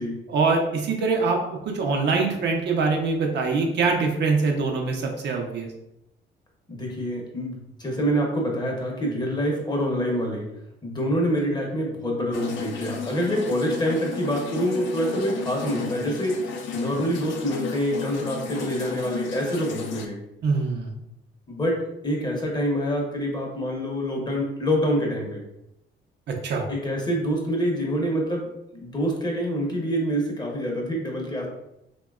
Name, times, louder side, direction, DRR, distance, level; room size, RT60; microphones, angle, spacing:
voice 1, 0.3-1.4 1.6-5.7 20.4-20.9 26.3-26.7, right 4 dB, 60° right, 1 dB, 0.5 m, -23 dB
voice 2, 6.7-10.5 10.8-16.4 16.7-20.2 21.5-25.4 26.7-28.5 28.7-31.5, equal, 20° left, -1 dB, 0.7 m, -26 dB
sound 1, 12.3-20.1, left 5 dB, 75° left, 0.4 m, -34 dB
2.7 x 2.2 x 2.3 m, 0.84 s
cardioid pair, 90°, 20 cm